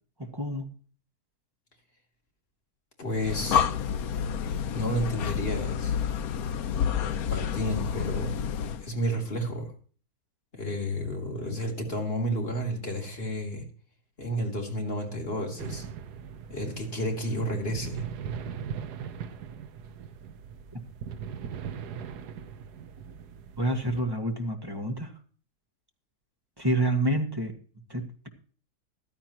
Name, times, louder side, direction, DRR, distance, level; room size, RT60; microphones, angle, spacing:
voice 1, 0.3-0.6 20.7-20.8 23.6-25.1 26.6-27.5 27.9-28.3, right 1 dB, 15° right, 4 dB, 1.7 m, -28 dB
voice 2, 3.0-3.7 4.7-6.0 7.3-8.4 8.8-9.7 10.5-13.6 14.2-15.9 16.5-18.0, equal, 35° left, 1 dB, 3.6 m, -31 dB
Breathing, 3.1-8.9, left 8 dB, 70° left, 1.1 m, -29 dB
sound 1, 15.6-24.0, right 7 dB, 80° right, 1.4 m, -39 dB
15.0 x 13.0 x 3.0 m, 0.42 s
omnidirectional pair, 1.7 m